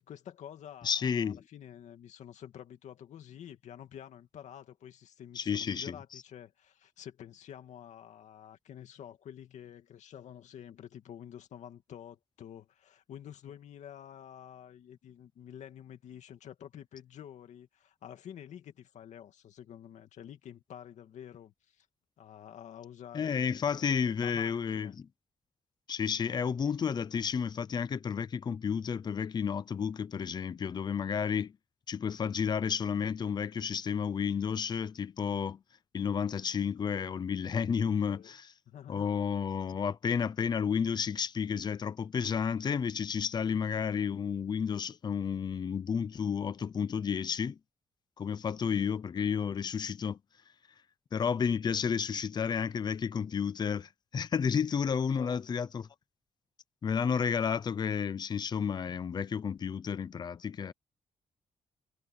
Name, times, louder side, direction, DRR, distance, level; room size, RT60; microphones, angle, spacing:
voice 1, 0.0-21.9 22.2-25.0 38.1-38.3 38.7-39.1 48.7-48.8 55.2-55.4, left 10 dB, 75° left, 2.3 m, -49 dB
voice 2, 0.8-1.4 5.3-5.9 23.1-25.1 25.9-31.5 31.9-35.6 35.9-38.5 38.9-47.6 48.2-50.2 51.1-55.9 56.8-60.7, left 7 dB, 35° left, 0.7 m, -31 dB
wide cardioid pair, 160°, 12 cm